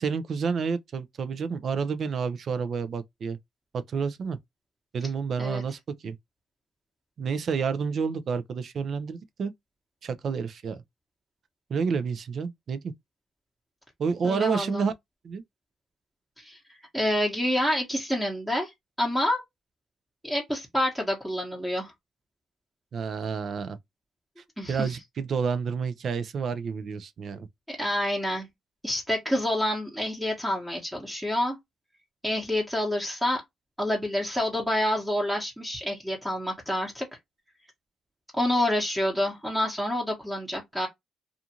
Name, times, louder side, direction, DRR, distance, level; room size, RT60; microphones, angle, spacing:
voice 1, 0.0-3.4 3.9-4.4 4.9-6.2 7.2-9.5 10.0-10.8 11.7-12.9 14.0-14.9 15.2-15.4 22.9-23.8 24.7-27.5, right 5 dB, 55° right, 0.4 m, -29 dB
voice 2, 14.2-14.8 16.4-16.6 16.9-18.7 19.0-19.4 20.2-21.9 24.6-24.9 27.7-28.5 28.8-31.6 32.2-33.4 33.8-37.1 38.4-40.9, left 1 dB, 5° right, 0.9 m, -28 dB
2.5 x 2.4 x 2.8 m
cardioid pair, 90°, 0 cm